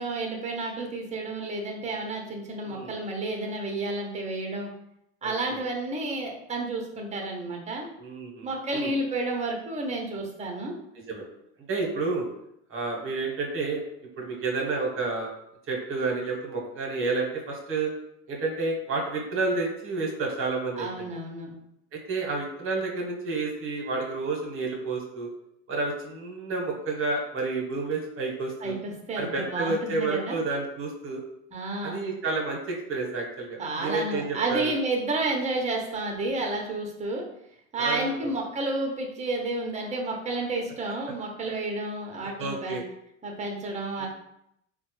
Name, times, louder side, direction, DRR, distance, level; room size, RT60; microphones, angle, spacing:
voice 1, 0.0-4.7 5.2-7.9 8.4-10.7 20.8-21.5 28.6-30.4 31.5-32.0 33.6-37.3 37.7-42.8 43.2-44.1, right 2 dB, 20° right, 1 dB, 0.8 m, -31 dB
voice 2, 8.0-8.9 11.1-11.3 11.7-12.2 12.7-13.8 14.2-15.3 15.7-17.9 18.3-21.1 21.9-25.3 25.7-28.8 29.1-31.2 31.8-34.7 37.8-38.4 42.4-42.8 44.0-44.1, right 3 dB, 40° right, 0 dB, 1.1 m, -30 dB
3.8 x 2.2 x 3.1 m, 0.77 s
supercardioid pair, 100°, 35 cm